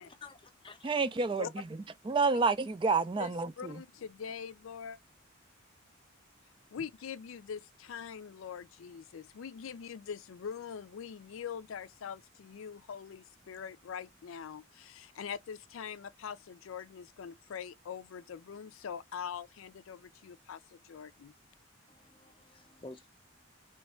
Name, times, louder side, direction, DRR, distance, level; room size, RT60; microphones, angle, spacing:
voice 1, 0.0-0.4 0.6-0.9 22.2-23.1, left 3 dB, 25° left, 0.6 m, -50 dB
voice 2, 0.8-1.6 2.1-3.8, right 4 dB, 25° right, 0.3 m, -29 dB
voice 3, 3.2-5.0 6.7-21.3, left 7 dB, 80° left, 0.4 m, -43 dB
3.4 x 3.1 x 4.2 m
head